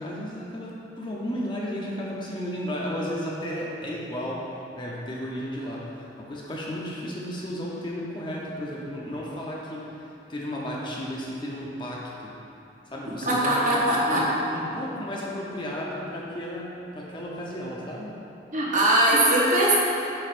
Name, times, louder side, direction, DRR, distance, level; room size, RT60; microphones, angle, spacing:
voice 1, 0.0-4.5 4.7-12.3 12.9-13.6 13.9-18.1, equal, 25° left, -4 dB, 0.7 m, -33 dB
voice 2, 13.3-14.3 18.5-19.8, right 1 dB, 45° right, -5 dB, 1.0 m, -21 dB
7.0 x 5.4 x 2.5 m, 2.9 s
head